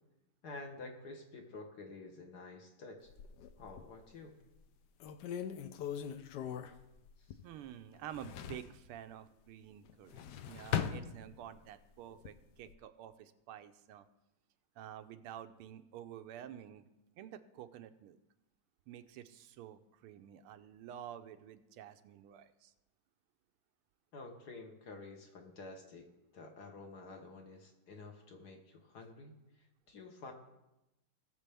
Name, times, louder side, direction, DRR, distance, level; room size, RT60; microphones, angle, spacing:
voice 1, 0.4-3.1 3.6-4.4 7.2-7.4 24.1-26.1 26.3-29.4 29.9-30.3, left 3 dB, 55° left, 3 dB, 1.5 m, -50 dB
sound 1, 3.1-4.0 4.5-4.6 5.0-7.7 7.9-8.8 9.9-11.7 12.1-12.7, left 9 dB, 70° left, 1.0 m, -40 dB
voice 2, 7.4-14.1 14.8-16.9 17.2-18.2 18.9-22.7, right 10 dB, 90° right, 10 dB, 1.5 m, -50 dB
19.0 x 6.9 x 3.4 m, 0.95 s
omnidirectional pair, 2.3 m